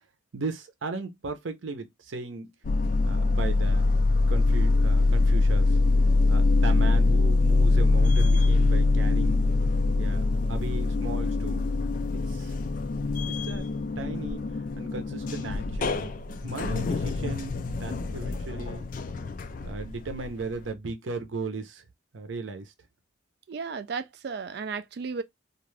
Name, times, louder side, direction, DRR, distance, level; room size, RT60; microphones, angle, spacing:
voice 1, 0.3-2.5 3.0-3.9 4.3-5.8 6.3-9.4 10.0-10.2 10.5-11.7 12.1-12.6 13.3-13.7 14.0-14.4 14.8-16.1 16.4-18.9 19.6-21.8 22.1-22.7, right 3 dB, 85° right, 0.7 m, -36 dB
sound 1, 2.7-20.7, left 3 dB, 45° left, 0.3 m, -24 dB
voice 2, 23.5-25.2, right 5 dB, 55° right, 0.3 m, -34 dB
2.5 x 2.3 x 3.1 m
head